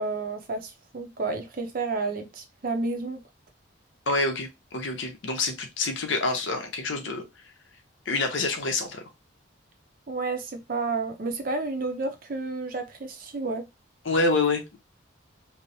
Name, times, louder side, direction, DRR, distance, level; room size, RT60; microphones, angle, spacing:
voice 1, 0.0-3.2 10.1-13.6, right 3 dB, 45° right, 0.5 m, -31 dB
voice 2, 4.1-7.2 8.1-9.0 14.0-14.8, left 3 dB, 70° left, 0.7 m, -27 dB
3.0 x 2.0 x 2.6 m
head